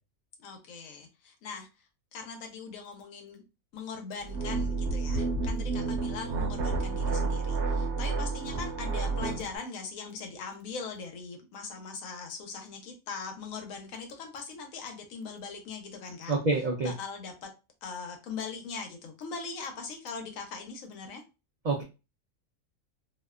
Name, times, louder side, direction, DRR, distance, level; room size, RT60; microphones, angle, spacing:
voice 1, 0.4-1.7 2.1-3.4 3.7-16.3 16.8-17.5 17.8-21.2, left 5 dB, 90° left, 4 dB, 1.1 m, -40 dB
sound 1, 4.2-9.5, right 3 dB, 65° right, 0.8 m, -30 dB
voice 2, 16.3-16.9 21.6-21.8, right 3 dB, 80° right, -1 dB, 0.4 m, -27 dB
2.7 x 2.1 x 2.3 m, 0.29 s
omnidirectional pair, 1.4 m